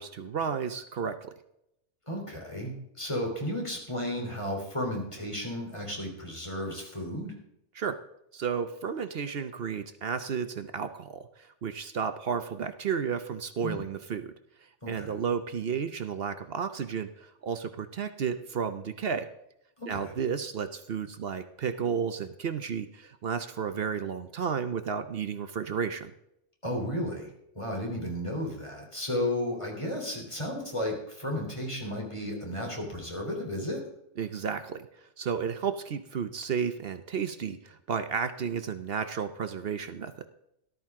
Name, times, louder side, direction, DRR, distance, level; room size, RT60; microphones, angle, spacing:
voice 1, 0.0-1.3 7.7-8.0 8.3-14.3 14.9-19.3 19.9-26.1 34.2-34.9 35.2-40.3, right 6 dB, 55° right, 10 dB, 0.9 m, -32 dB
voice 2, 2.1-7.3 13.6-13.9 14.8-15.2 19.8-20.1 26.6-33.8, left 1 dB, 25° left, 0 dB, 3.5 m, -33 dB
13.5 x 12.5 x 3.6 m, 0.80 s
omnidirectional pair, 1.3 m